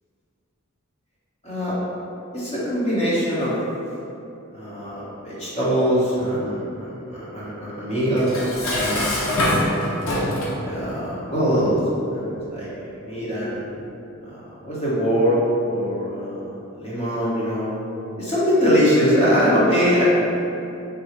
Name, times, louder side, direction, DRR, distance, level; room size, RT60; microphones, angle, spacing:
voice 1, 2.3-3.5 4.5-8.3 8.6-9.4 10.0-10.2 10.6-11.8 12.1-13.6 14.2-16.5 16.7-17.8 18.2-20.0, equal, 30° left, -9 dB, 1.1 m, -22 dB
Dishes pots and pans, 8.2-10.6, left 1 dB, 90° left, 0.8 m, -23 dB
3.7 x 2.3 x 4.5 m, 2.8 s
head